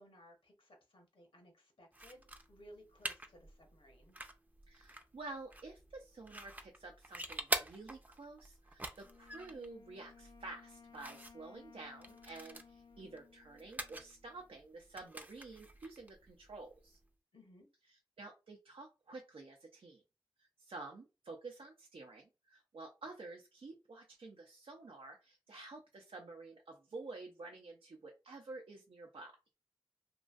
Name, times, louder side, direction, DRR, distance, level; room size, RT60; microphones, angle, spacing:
voice 1, 0.0-4.2 17.3-17.7, equal, 75° left, 2 dB, 1.0 m, -60 dB
sound 1, 1.9-17.1, right 1 dB, 20° right, 0.5 m, -46 dB
voice 2, 4.7-17.0 17.9-20.0 20.4-29.3, right 3 dB, 80° right, 1 dB, 0.5 m, -50 dB
Wind instrument woodwind instrument, 9.0-14.5, left 6 dB, 45° left, 0.4 m, -60 dB
3.0 x 2.5 x 2.4 m, 0.29 s
cardioid pair, 45°, 9 cm